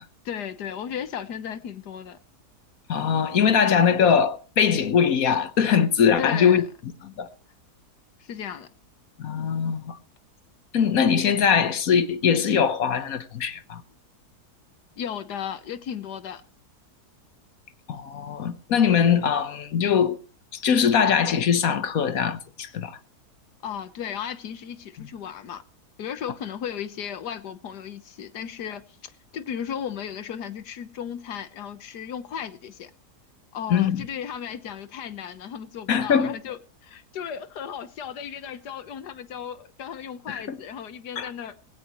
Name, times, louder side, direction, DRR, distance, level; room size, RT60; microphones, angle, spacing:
voice 1, 0.2-2.2 6.2-6.7 8.2-8.7 15.0-16.4 23.6-25.6 26.0-32.9 33.5-41.5, left 8 dB, 85° left, 1.7 m, -35 dB
voice 2, 2.9-6.6 7.0-7.3 9.2-10.0 10.7-13.8 17.9-20.2 20.5-23.0 25.0-25.1 33.7-34.0 35.9-36.4 40.3-40.6 41.2-41.3, left 7 dB, 60° left, 1.4 m, -22 dB
18.0 x 17.0 x 3.1 m
omnidirectional pair, 1.7 m